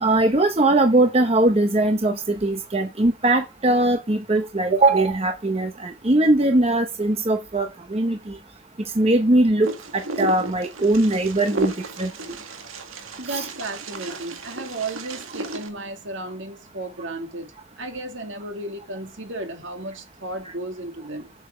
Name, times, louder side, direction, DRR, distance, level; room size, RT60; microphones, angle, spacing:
voice 1, 0.0-8.4 9.0-11.7 12.0-12.1 13.3-13.5, right 2 dB, 30° right, 0.8 m, -20 dB
Wind, 9.6-15.7, right 2 dB, 85° right, 1.8 m, -33 dB
voice 2, 13.2-17.5 17.8-21.3, right 2 dB, 65° right, 2.4 m, -34 dB
8.2 x 7.0 x 5.0 m
head